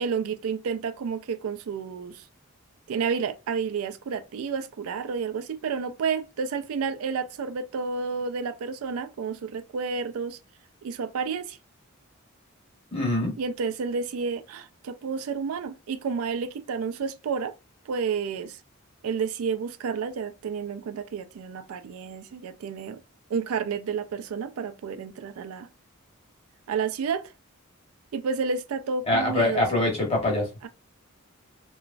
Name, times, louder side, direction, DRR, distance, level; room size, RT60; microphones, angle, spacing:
voice 1, 0.0-2.2 2.9-10.4 10.8-11.6 13.4-17.5 17.9-18.6 19.0-23.0 23.3-25.7 26.7-27.3 28.1-29.8 30.6-30.7, right 5 dB, 75° right, 0.4 m, -30 dB
voice 2, 12.9-13.3 29.1-30.5, left 2 dB, 25° left, 1.0 m, -24 dB
2.9 x 2.3 x 2.4 m
head